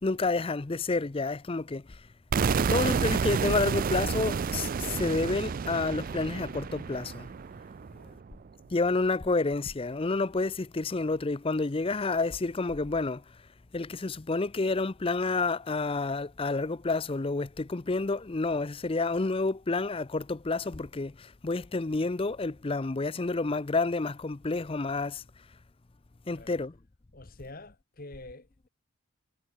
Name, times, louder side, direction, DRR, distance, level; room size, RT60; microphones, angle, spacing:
voice 1, 0.0-2.1 2.7-7.3 8.7-13.4 13.7-25.2 26.3-26.8, left 3 dB, 25° left, 0.5 m, -29 dB
sound 1, 2.3-8.2, right 5 dB, 40° right, 0.3 m, -30 dB
voice 2, 2.6-3.1 7.8-8.3 26.3-26.6 27.1-28.7, left 2 dB, 40° left, 2.1 m, -48 dB
head